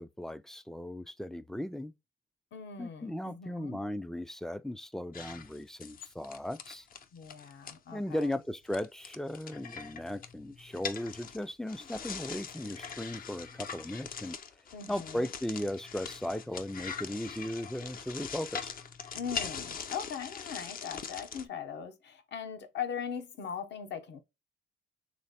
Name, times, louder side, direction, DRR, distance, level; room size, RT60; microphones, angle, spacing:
voice 1, 0.0-1.9 2.8-6.9 7.9-14.4 14.9-18.7, left 1 dB, ahead, 0.3 m, -37 dB
voice 2, 2.5-3.8 7.1-8.3 14.7-15.3 19.1-24.2, left 7 dB, 60° left, 1.0 m, -40 dB
sound 1, 5.1-7.8 8.2-8.3 8.7-21.5, left 6 dB, 45° left, 0.6 m, -42 dB
3.3 x 3.2 x 4.1 m
cardioid pair, 90°, 20 cm